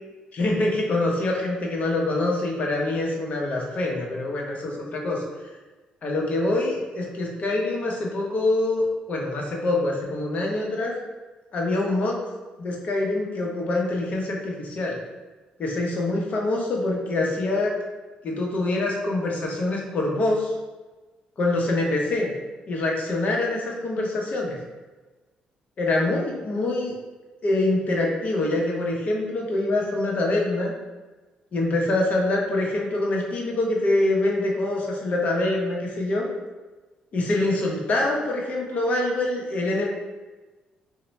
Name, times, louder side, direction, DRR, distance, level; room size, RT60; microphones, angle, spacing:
voice 1, 0.3-5.2 6.0-10.9 11.5-12.2 12.6-15.0 15.6-17.7 18.2-20.5 21.4-22.3 22.7-24.6 25.8-26.9 27.4-30.7 31.5-36.3 37.1-39.9, left 2 dB, 50° left, -1 dB, 0.8 m, -25 dB
2.9 x 2.1 x 4.0 m, 1.2 s
cardioid pair, 75°, 3 cm